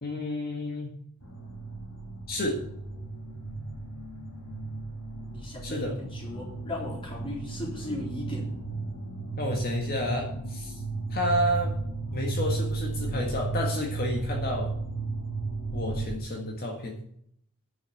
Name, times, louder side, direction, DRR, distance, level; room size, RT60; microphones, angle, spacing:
voice 1, 0.0-1.0 2.3-2.6 5.6-6.0 9.4-10.8 11.1-11.8 12.1-14.7 15.7-16.9, left 1 dB, 45° left, 1 dB, 1.8 m, -30 dB
sound 1, 1.2-16.1, right 3 dB, 85° left, 3.0 m, -34 dB
voice 2, 5.3-8.5, left 1 dB, 25° left, -3 dB, 4.1 m, -37 dB
10.0 x 6.2 x 8.4 m, 0.67 s
head